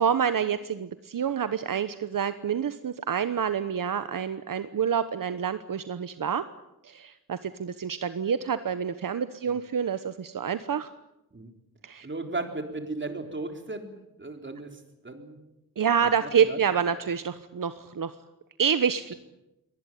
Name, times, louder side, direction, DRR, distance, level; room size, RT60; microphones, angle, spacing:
voice 1, 0.0-6.4 6.8-10.9 11.8-12.1 15.8-18.1 18.6-19.1, right 7 dB, 70° right, 11 dB, 1.1 m, -27 dB
voice 2, 12.0-13.9 14.2-15.4 16.2-16.6, right 2 dB, 35° right, 5 dB, 4.0 m, -36 dB
24.0 x 19.5 x 9.3 m, 0.91 s
wide cardioid pair, 85°, 35 cm